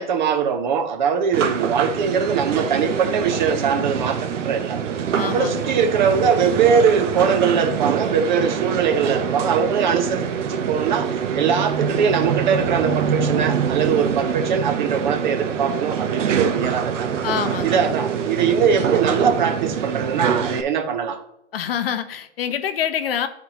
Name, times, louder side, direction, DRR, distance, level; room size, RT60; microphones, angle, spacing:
voice 1, 0.0-4.8 5.2-11.1 11.3-17.2 17.6-21.2, right 6 dB, 40° right, 0.7 m, -21 dB
sound 1, 1.3-20.6, right 7 dB, 80° right, 0.7 m, -24 dB
voice 2, 5.1-5.8 17.2-17.9 21.5-23.3, left 9 dB, 55° left, 0.6 m, -26 dB
10.5 x 4.1 x 2.9 m
hypercardioid pair, 150°, 36 cm